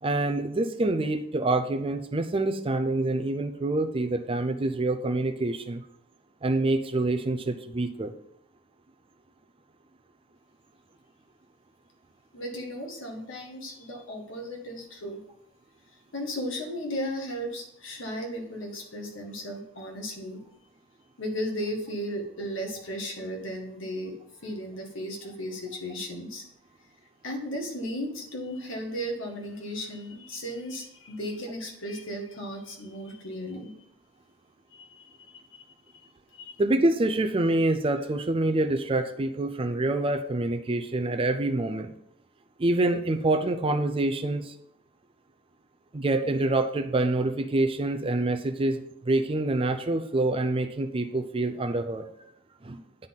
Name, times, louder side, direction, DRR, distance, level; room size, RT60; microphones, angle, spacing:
voice 1, 0.0-5.8 6.4-8.1 36.6-41.9 42.6-44.5 45.9-52.1 52.6-52.8, right 2 dB, 30° right, 6 dB, 0.5 m, -26 dB
voice 2, 12.3-15.2 16.1-20.4 21.2-24.2 24.4-26.4 27.2-33.7 34.7-35.6 36.3-36.6, equal, 70° left, 2 dB, 1.8 m, -35 dB
8.9 x 4.0 x 5.6 m, 0.74 s
head